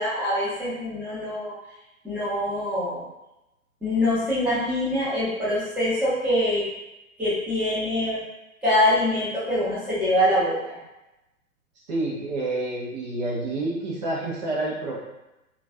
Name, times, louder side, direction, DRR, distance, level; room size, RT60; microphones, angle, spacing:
voice 1, 0.0-1.5 2.0-3.0 3.8-6.6 7.2-8.2 8.6-10.8, left 1 dB, 5° right, -12 dB, 0.8 m, -24 dB
voice 2, 11.9-15.0, right 2 dB, 30° right, -5 dB, 0.6 m, -28 dB
3.0 x 2.4 x 2.5 m, 0.96 s
figure-of-eight pair, 120°, 43 cm